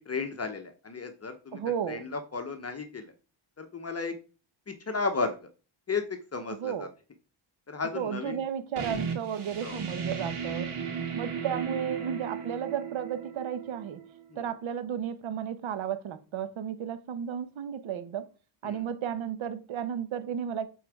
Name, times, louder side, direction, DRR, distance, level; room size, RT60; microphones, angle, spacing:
voice 1, 0.1-1.6 1.9-3.1 3.6-4.1 4.7-5.5 5.9-6.9 7.7-8.4 9.6-9.8 14.3-14.5 18.6-18.8, left 4 dB, 30° left, 0.8 m, -34 dB
voice 2, 1.5-2.0 6.5-6.9 7.9-10.7 11.1-14.0 14.4-18.2 18.6-20.7, right 8 dB, 70° right, 1.0 m, -33 dB
sound 1, 8.8-14.2, right 6 dB, 85° right, 2.3 m, -35 dB
8.5 x 3.8 x 4.8 m
cardioid pair, 115°, 49 cm